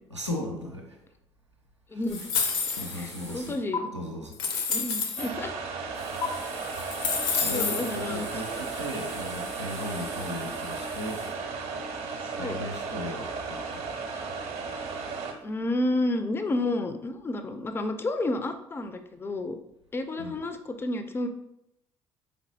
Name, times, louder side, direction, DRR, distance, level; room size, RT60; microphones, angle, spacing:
voice 1, 0.1-1.0 1.9-2.0 2.8-3.5 3.9-4.4 7.4-11.2 12.3-13.8 20.2-20.3, left 1 dB, 90° right, 1 dB, 0.5 m, -36 dB
voice 2, 1.9-2.3 2.9-3.9 4.7-5.6 7.5-8.3 12.3-12.6 15.4-19.6 19.9-21.3, left 2 dB, 15° left, 9 dB, 0.4 m, -30 dB
sound 1, 2.1-3.6 5.9-11.3, left 1 dB, 90° left, 1.2 m, -44 dB
sound 2, 2.1-3.1 3.7-3.8 4.3-5.3 6.2-6.3 6.7-7.9, left 5 dB, 60° left, 0.6 m, -28 dB
sound 3, 5.2-15.3, right 4 dB, 45° right, 0.6 m, -35 dB
4.0 x 3.4 x 2.6 m, 0.82 s
figure-of-eight pair, 50°, 15 cm